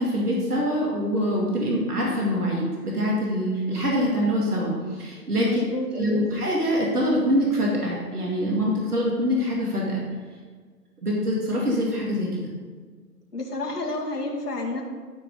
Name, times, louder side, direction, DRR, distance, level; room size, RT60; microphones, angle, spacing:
voice 1, 0.0-5.6 5.9-10.0 11.0-12.4, equal, 70° right, -3 dB, 2.6 m, -24 dB
voice 2, 5.4-6.3 13.3-14.8, left 2 dB, 70° left, -2 dB, 2.3 m, -30 dB
11.5 x 6.0 x 5.2 m, 1.5 s
figure-of-eight pair, 130°, 48 cm